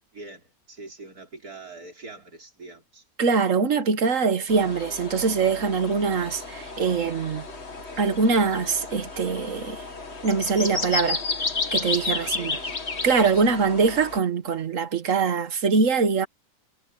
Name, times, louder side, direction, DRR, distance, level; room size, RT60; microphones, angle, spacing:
voice 1, 0.1-3.0 12.2-12.8, right 3 dB, 80° right, 5.1 m, -43 dB
voice 2, 3.2-7.5 8.0-9.8 10.2-11.2 11.7-12.5 13.0-16.3, right 5 dB, 60° right, 1.6 m, -23 dB
sound 1, 4.5-14.2, left 4 dB, 45° left, 2.4 m, -32 dB
omnidirectional pair, 1.6 m